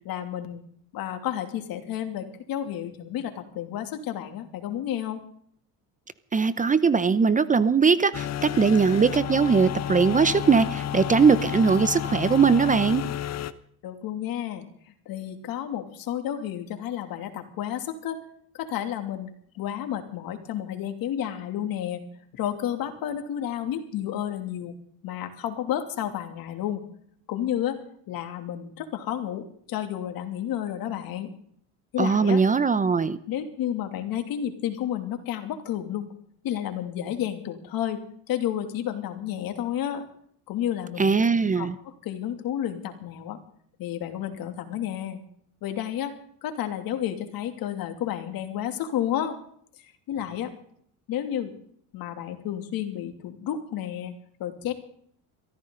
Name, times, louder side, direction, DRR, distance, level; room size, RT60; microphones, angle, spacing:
voice 1, 0.0-0.7 0.9-5.2 13.8-14.7 15.0-18.2 18.5-22.0 22.3-24.7 25.0-26.8 27.3-27.8 28.1-31.3 31.9-32.4 33.3-36.1 36.4-38.0 38.3-40.0 40.5-41.1 41.6-43.4 43.8-45.2 45.6-46.1 46.4-49.4 49.8-50.5 51.1-51.5 51.9-54.7, left 10 dB, 65° left, 6 dB, 2.8 m, -31 dB
voice 2, 6.3-13.0 32.0-33.2 41.0-41.7, right 5 dB, 20° right, 15 dB, 0.7 m, -20 dB
sound 1, 8.1-13.5, left 11 dB, 45° left, 1.0 m, -31 dB
23.0 x 15.0 x 3.9 m, 0.64 s
cardioid pair, 115°, 38 cm